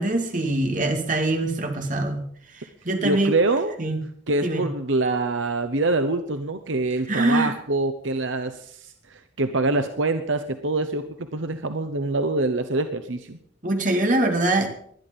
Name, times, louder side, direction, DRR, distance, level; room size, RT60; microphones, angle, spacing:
voice 1, 0.0-2.2 2.8-3.3 3.8-4.0 4.4-4.6 7.1-7.5 13.6-14.7, right 2 dB, 40° right, 4 dB, 2.5 m, -23 dB
voice 2, 3.0-3.7 4.3-13.4, right 2 dB, 75° right, 8 dB, 1.0 m, -25 dB
20.0 x 12.0 x 5.4 m, 0.63 s
head